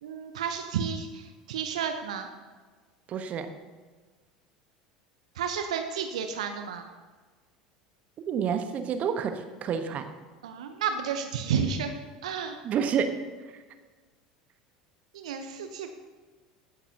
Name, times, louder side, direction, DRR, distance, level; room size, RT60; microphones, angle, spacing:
voice 1, 0.0-2.3 5.4-6.9 10.4-11.9 12.2-12.6 15.1-15.9, right 7 dB, 70° right, 6 dB, 0.8 m, -31 dB
voice 2, 3.1-3.5 8.3-10.1 12.6-13.1 13.5-13.6, right 7 dB, 40° right, 8 dB, 1.0 m, -29 dB
15.5 x 9.8 x 2.8 m, 1.4 s
figure-of-eight pair, 70°, 4 cm